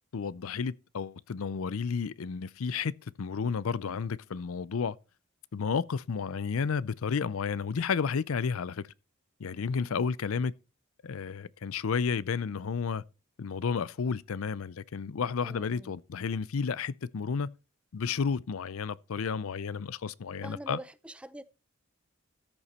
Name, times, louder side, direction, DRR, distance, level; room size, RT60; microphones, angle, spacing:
voice 1, 0.1-5.0 5.5-8.9 9.4-10.5 11.0-13.0 13.4-17.5 17.9-20.8, left 5 dB, 85° left, 0.5 m, -32 dB
voice 2, 15.4-15.9 20.4-21.4, right 1 dB, 5° right, 0.4 m, -45 dB
13.5 x 7.1 x 4.2 m
head